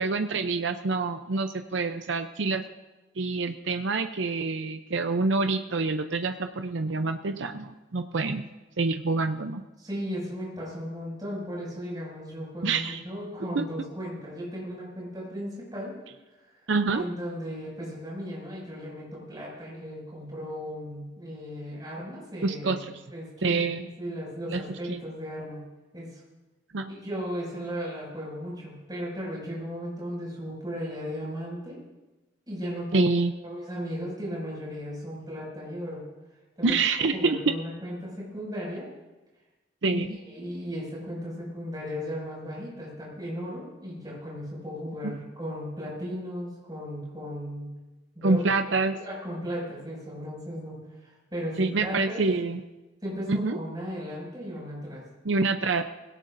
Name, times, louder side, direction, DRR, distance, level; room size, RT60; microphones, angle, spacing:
voice 1, 0.0-2.6 3.2-8.5 8.8-9.6 12.6-13.0 13.5-13.6 16.7-17.0 22.4-22.9 23.4-23.9 24.5-24.6 24.9-25.0 26.7-26.9 32.9-33.3 36.6-37.4 39.8-40.1 45.0-45.1 48.2-49.0 51.6-52.6 53.3-53.6 55.2-55.8, right 3 dB, 80° right, 8 dB, 0.6 m, -26 dB
voice 2, 9.8-15.9 16.9-23.6 24.0-25.6 25.9-26.2 26.9-31.8 32.5-33.1 33.4-36.0 36.6-36.7 37.1-38.9 39.9-47.7 48.1-48.5 49.0-52.2 53.0-55.0, equal, 20° right, -4 dB, 6.4 m, -36 dB
21.0 x 17.5 x 2.7 m, 1.1 s
head